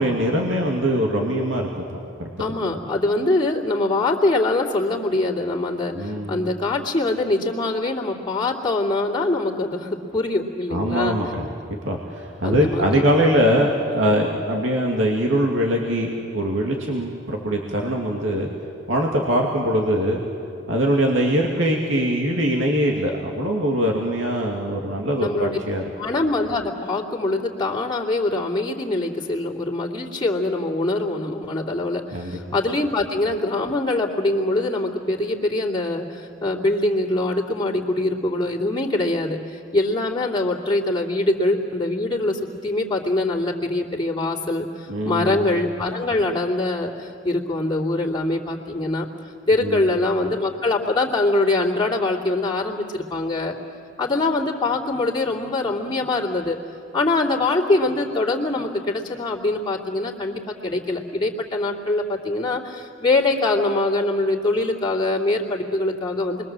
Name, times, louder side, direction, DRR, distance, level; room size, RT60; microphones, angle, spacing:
voice 1, 0.0-2.3 5.9-6.5 10.7-11.5 11.8-18.5 18.9-20.2 20.7-25.8 32.1-32.4 44.9-45.4 49.6-49.8, equal, 90° right, 0 dB, 2.4 m, -22 dB
voice 2, 2.4-11.2 12.4-13.1 25.2-25.6 26.0-49.1 49.5-53.5 54.0-56.6 56.9-66.4, left 2 dB, 25° left, -3 dB, 2.8 m, -23 dB
28.0 x 22.5 x 7.6 m, 2.8 s
head